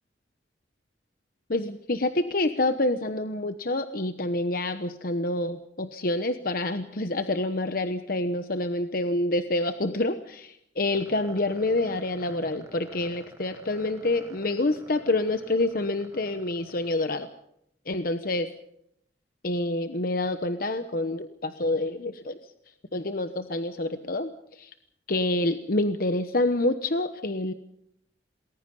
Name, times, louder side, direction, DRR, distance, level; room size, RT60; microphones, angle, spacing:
voice 1, 1.5-17.3 17.9-18.5 19.4-22.4 22.9-24.7 25.1-27.5, left 2 dB, 55° left, 9 dB, 1.0 m, -27 dB
sound 1, 10.9-17.4, right 1 dB, 15° right, 1.6 m, -49 dB
28.5 x 20.5 x 5.5 m, 0.75 s
head